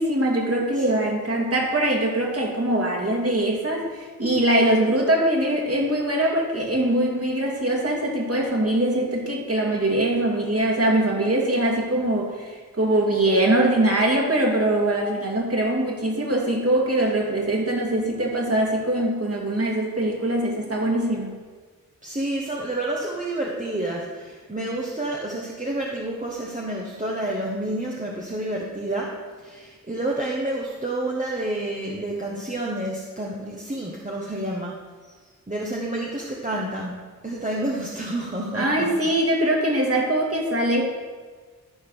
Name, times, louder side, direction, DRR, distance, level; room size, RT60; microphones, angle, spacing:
voice 1, 0.0-21.4 38.5-40.8, right 1 dB, 45° right, -1 dB, 2.5 m, -22 dB
voice 2, 22.0-34.8 35.5-37.0 37.2-38.9, right 1 dB, 20° right, -3 dB, 1.3 m, -29 dB
14.0 x 5.0 x 6.4 m, 1.5 s
wide cardioid pair, 75°, 34 cm